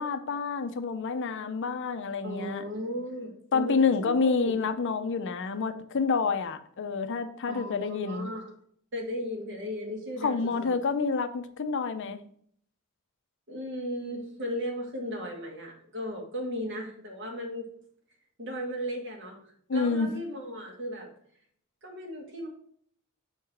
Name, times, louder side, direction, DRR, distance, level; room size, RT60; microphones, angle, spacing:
voice 1, 0.0-2.6 3.5-8.3 10.2-12.2 19.7-20.1, left 4 dB, 55° left, 10 dB, 0.5 m, -28 dB
voice 2, 2.2-4.5 7.5-8.5 8.9-10.7 13.5-17.7 18.4-19.4 19.7-21.1 21.8-22.5, equal, 55° right, 1 dB, 1.6 m, -36 dB
6.2 x 3.8 x 4.3 m, 0.63 s
head